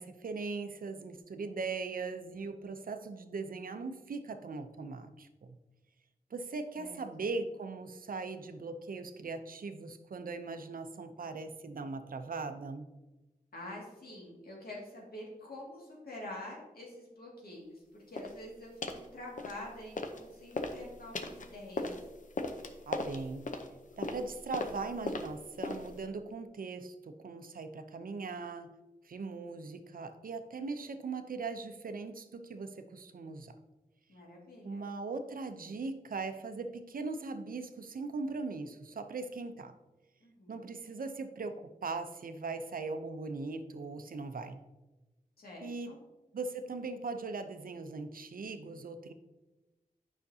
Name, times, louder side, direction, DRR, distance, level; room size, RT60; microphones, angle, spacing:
voice 1, 0.0-5.6 6.3-12.9 22.9-23.4 24.0-28.7 29.0-33.5 34.6-39.7 40.5-44.6 45.6-45.9 46.3-49.1, right 4 dB, 70° right, 8 dB, 0.6 m, -40 dB
voice 2, 6.8-7.2 13.5-21.9 34.1-34.9 40.2-40.7 45.4-46.0, left 1 dB, 90° left, -3 dB, 2.1 m, -47 dB
sound 1, 18.1-18.4 18.8-19.1 19.4-20.2 20.5-26.0, left 3 dB, 60° left, 0.7 m, -38 dB
9.2 x 5.8 x 2.7 m, 1.1 s
wide cardioid pair, 80°, 15 cm